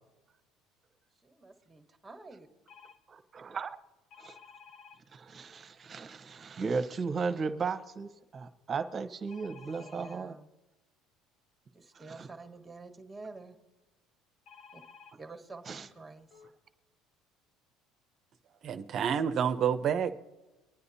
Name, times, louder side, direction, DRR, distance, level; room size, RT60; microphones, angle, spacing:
voice 1, 1.2-2.5 9.6-10.5 11.7-13.6 14.7-14.8 15.2-16.4, right 3 dB, 15° right, 5 dB, 1.5 m, -49 dB
sound 1, 2.7-3.0 4.1-5.0 9.3-10.2 14.5-15.2 16.0-16.1 16.3-16.5, left 6 dB, 60° left, 1.3 m, -53 dB
voice 2, 3.1-3.8 4.2-4.4 5.1-10.4 12.2-12.3 15.7-15.9, right 5 dB, 35° right, 9 dB, 1.1 m, -35 dB
voice 3, 18.6-20.2, right 8 dB, 50° right, 9 dB, 0.7 m, -29 dB
24.0 x 9.7 x 2.8 m, 1.1 s
cardioid pair, 110°, 0 cm